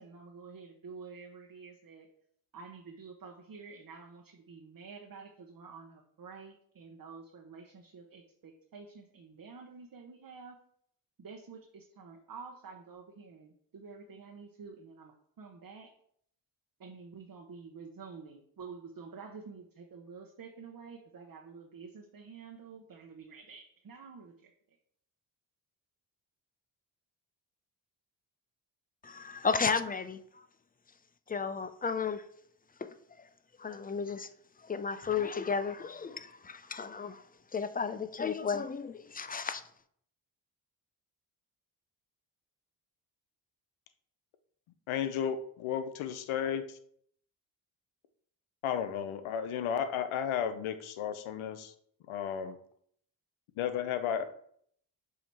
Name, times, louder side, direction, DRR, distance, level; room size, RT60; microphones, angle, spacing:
voice 1, 0.0-2.1 2.5-10.6 11.2-15.9 16.8-24.5, right 5 dB, 45° right, 0.9 m, -49 dB
voice 2, 29.0-30.5 31.3-32.2 32.8-33.3 33.6-34.3 34.6-37.2 37.5-39.6, left 5 dB, 20° left, 0.5 m, -34 dB
voice 3, 44.9-46.6 48.6-51.7 52.1-52.6 53.6-54.2, left 8 dB, 85° left, 0.7 m, -33 dB
7.1 x 2.8 x 4.6 m
cardioid pair, 60°, 47 cm